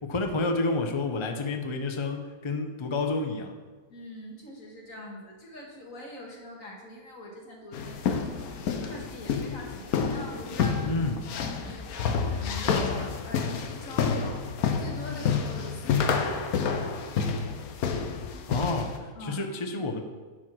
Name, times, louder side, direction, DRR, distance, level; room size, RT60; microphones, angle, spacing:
voice 1, 0.0-3.5 10.9-11.2 18.5-20.0, left 3 dB, 30° left, 4 dB, 0.6 m, -29 dB
voice 2, 3.9-11.1 11.4-14.4 14.8-16.9 19.1-19.5, left 1 dB, 65° left, -1 dB, 2.1 m, -43 dB
sound 1, 7.7-19.0, left 6 dB, 85° left, 1.2 m, -29 dB
10.0 x 4.8 x 6.0 m, 1.4 s
omnidirectional pair, 1.5 m